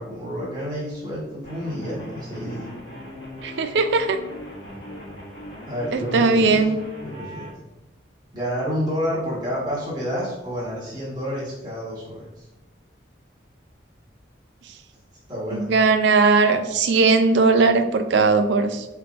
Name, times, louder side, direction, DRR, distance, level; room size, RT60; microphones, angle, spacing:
voice 1, 0.0-2.8 4.7-4.8 5.7-6.7 7.0-7.5 8.3-12.4 15.3-15.7, equal, 20° right, -8 dB, 1.2 m, -29 dB
sound 1, 1.4-7.5, left 1 dB, 75° left, 1.2 m, -39 dB
voice 2, 3.4-4.2 5.9-6.8 15.5-18.9, right 4 dB, 70° right, 9 dB, 0.4 m, -18 dB
4.6 x 3.4 x 2.5 m, 1.0 s
head